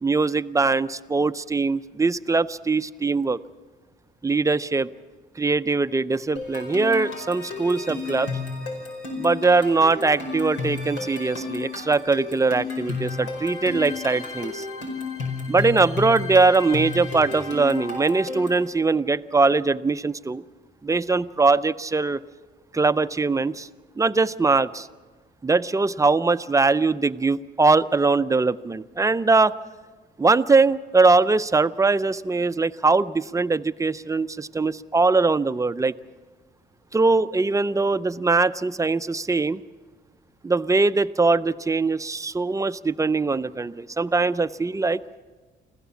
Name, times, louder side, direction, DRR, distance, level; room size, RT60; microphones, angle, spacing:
voice 1, 0.0-3.4 4.2-4.9 5.4-8.3 9.2-14.7 15.5-20.4 20.8-22.2 22.7-23.7 24.0-24.9 25.4-29.5 30.2-35.9 36.9-39.6 40.4-45.0, right 3 dB, 15° right, 12 dB, 0.6 m, -21 dB
sound 1, 6.4-18.7, left 4 dB, 85° left, 5.0 m, -32 dB
25.5 x 16.0 x 7.1 m, 1.4 s
cardioid pair, 90°, 20 cm